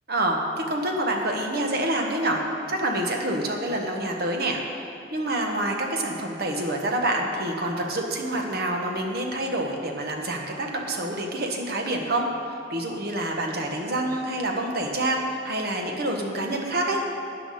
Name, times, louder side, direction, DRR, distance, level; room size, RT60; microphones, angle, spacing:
voice 1, 0.1-0.4 0.7-2.4 2.7-4.6 5.1-12.3 12.7-17.0, right 1 dB, 55° right, 1 dB, 1.2 m, -27 dB
12.5 x 9.0 x 4.2 m, 2.6 s
head